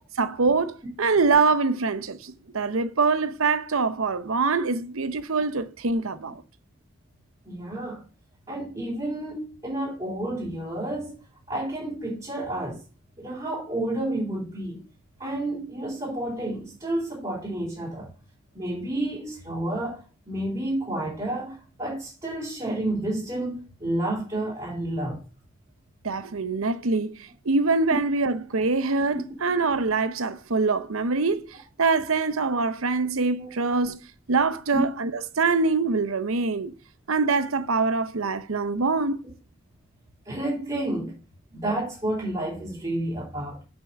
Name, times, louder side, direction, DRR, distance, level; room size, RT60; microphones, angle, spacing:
voice 1, 0.2-6.4 26.0-34.0 34.3-36.7 37.1-39.2, right 4 dB, 85° right, 0.8 m, -24 dB
voice 2, 7.4-8.0 8.5-11.2 11.5-12.8 13.2-14.8 15.2-18.1 18.5-25.2 27.9-28.0 33.4-33.5 34.7-34.8 40.2-41.2 41.5-43.6, right 1 dB, 25° right, 3.3 m, -30 dB
6.8 x 5.7 x 6.5 m
head